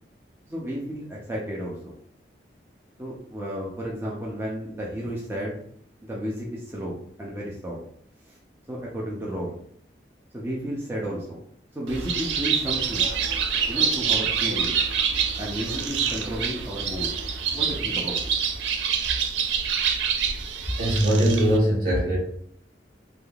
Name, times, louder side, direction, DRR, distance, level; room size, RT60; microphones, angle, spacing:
voice 1, 0.5-1.9 3.0-5.6 6.0-6.9 7.2-7.8 8.2-8.4 8.7-9.6 10.3-11.4 11.7-13.1 13.7-14.7 15.4-17.1 17.5-18.2, equal, 15° right, -5 dB, 0.5 m, -32 dB
Bird, 11.9-21.6, right 6 dB, 80° right, 0.4 m, -26 dB
voice 2, 20.8-22.2, right 1 dB, 55° right, -4 dB, 1.2 m, -21 dB
3.4 x 2.7 x 2.4 m, 0.65 s
head